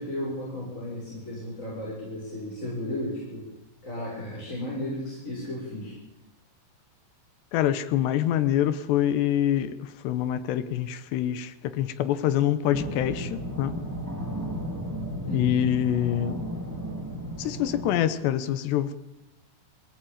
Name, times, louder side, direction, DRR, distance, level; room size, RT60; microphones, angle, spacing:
voice 1, 0.0-3.4 3.8-5.9 15.2-15.6, left 1 dB, 15° left, 6.6 m, -34 dB
voice 2, 7.5-13.8 15.3-16.5 17.4-18.9, left 11 dB, 75° left, 2.8 m, -25 dB
sound 1, 12.7-17.9, equal, 5° right, 1.5 m, -34 dB
25.0 x 18.5 x 8.9 m
omnidirectional pair, 5.7 m